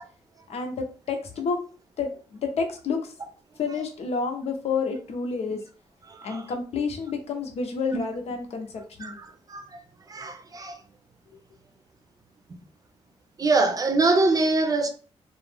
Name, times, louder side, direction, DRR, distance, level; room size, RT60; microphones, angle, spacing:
voice 1, 0.5-1.6 2.0-3.1 3.6-5.6 6.2-9.2, left 4 dB, 65° left, 0.7 m, -29 dB
voice 2, 6.1-6.4 9.0-9.7 10.1-10.8 12.5-12.6 13.4-14.9, right 3 dB, 30° right, 0.6 m, -24 dB
2.5 x 2.0 x 3.3 m
supercardioid pair, 60°, 12 cm